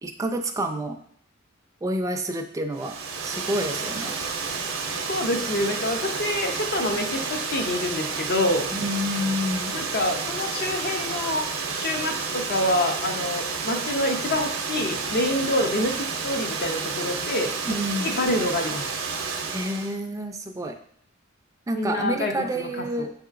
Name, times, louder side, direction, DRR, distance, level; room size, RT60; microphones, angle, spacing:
voice 1, 0.0-1.0 1.8-4.1 8.7-9.7 17.6-18.2 19.5-20.8 21.7-23.1, equal, 15° right, 4 dB, 0.4 m, -29 dB
Water, 2.7-20.0, right 5 dB, 80° right, 0.6 m, -30 dB
voice 2, 5.1-8.6 9.7-11.4 11.7-17.5 18.0-18.8 21.7-22.7, left 1 dB, 55° left, 3 dB, 0.7 m, -26 dB
7.0 x 2.8 x 2.5 m, 0.62 s
head